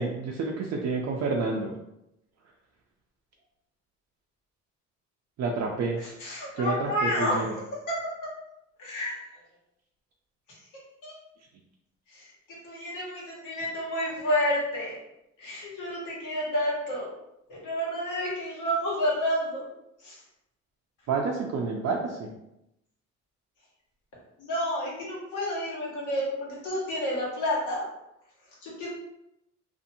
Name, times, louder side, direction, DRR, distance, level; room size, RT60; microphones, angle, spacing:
voice 1, 0.0-1.8 5.4-6.0 6.5-7.6 21.1-22.3, right 4 dB, 60° right, 0 dB, 0.5 m, -29 dB
voice 2, 6.0-7.4 8.8-9.2 11.0-11.1 12.1-12.3 12.6-14.9 15.4-17.1 17.5-19.7 20.0-20.2 24.4-27.8 28.6-28.9, left 1 dB, 85° left, -5 dB, 1.3 m, -30 dB
2.7 x 2.5 x 2.6 m, 0.85 s
cardioid pair, 90°, 30 cm